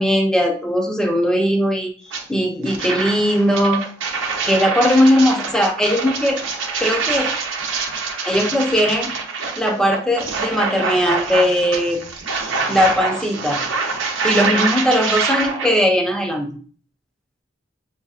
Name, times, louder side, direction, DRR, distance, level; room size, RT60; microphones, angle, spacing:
voice 1, 0.0-1.9 2.3-3.9 4.4-6.4 6.8-7.3 8.2-9.1 9.5-12.0 12.7-13.7 14.2-16.6, equal, 5° left, 2 dB, 0.6 m, -18 dB
sound 1, 2.1-2.2 2.6-15.7, right 4 dB, 80° right, 0.8 m, -25 dB
6.6 x 2.7 x 2.4 m, 0.42 s
head